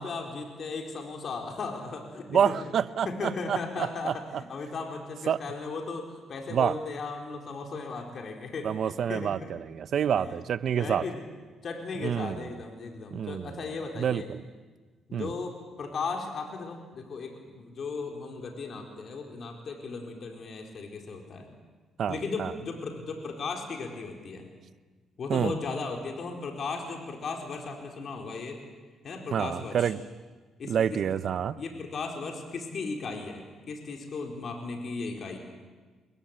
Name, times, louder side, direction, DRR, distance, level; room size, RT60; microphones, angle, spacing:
voice 1, 0.0-2.6 3.0-4.2 4.5-9.5 10.1-10.3 10.7-11.2 11.6-14.3 15.1-21.5 22.1-24.5 25.2-28.6 29.0-29.9 30.6-31.0 31.6-33.4 33.7-35.4, left 4 dB, 55° left, 3 dB, 4.5 m, -36 dB
voice 2, 2.3-4.4 5.3-5.4 6.5-6.7 8.6-11.0 12.0-12.4 13.1-13.6 14.0-14.4 15.1-15.3 22.0-22.5 25.3-25.5 29.3-30.0 30.7-31.6, right 8 dB, 60° right, 15 dB, 1.0 m, -28 dB
27.5 x 22.5 x 9.0 m, 1.4 s
cardioid pair, 90°, 0 cm